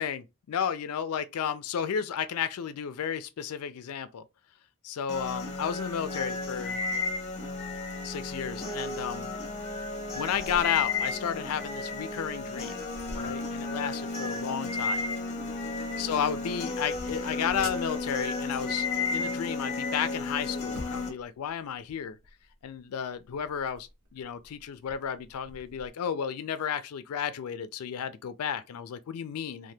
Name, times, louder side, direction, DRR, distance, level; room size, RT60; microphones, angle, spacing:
voice 1, 0.0-4.3 4.8-6.8 8.0-9.3 10.1-12.8 13.1-15.0 16.0-22.2 22.6-29.7, left 8 dB, 80° left, 0.4 m, -33 dB
sound 1, 5.1-21.1, left 3 dB, 30° left, 0.7 m, -33 dB
sound 2, 10.2-25.9, right 1 dB, 75° right, 0.8 m, -49 dB
2.8 x 2.2 x 3.2 m
head